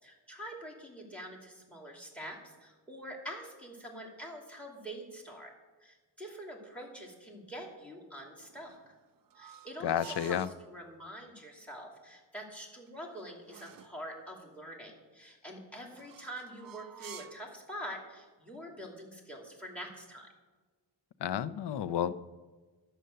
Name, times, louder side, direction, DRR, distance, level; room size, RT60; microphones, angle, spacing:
voice 1, 0.0-5.5 5.8-8.9 9.3-10.4 10.7-20.3, equal, 5° left, 1 dB, 2.7 m, -45 dB
sound 1, 8.4-10.6 12.6-14.0 15.9-17.5, right 8 dB, 55° right, 0.7 m, -51 dB
voice 2, 9.8-10.5 21.2-22.3, left 9 dB, 70° left, 15 dB, 0.6 m, -31 dB
11.5 x 8.0 x 6.6 m, 1.3 s
wide cardioid pair, 120°, 43 cm